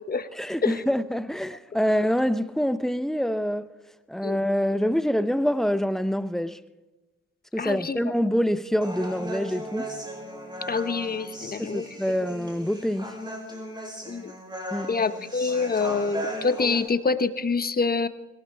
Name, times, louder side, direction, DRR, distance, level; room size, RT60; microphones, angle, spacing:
voice 1, 0.4-3.7 4.1-6.6 7.5-9.9 11.6-13.1 14.7-14.9, equal, ahead, 0.7 m, -26 dB
voice 2, 7.6-8.0 10.7-11.9 14.1-14.3 14.9-18.1, left 4 dB, 30° left, 1.0 m, -26 dB
Human voice, 8.8-16.8, equal, 15° right, 5.2 m, -37 dB
22.0 x 18.0 x 3.4 m
cardioid pair, 90°, 30 cm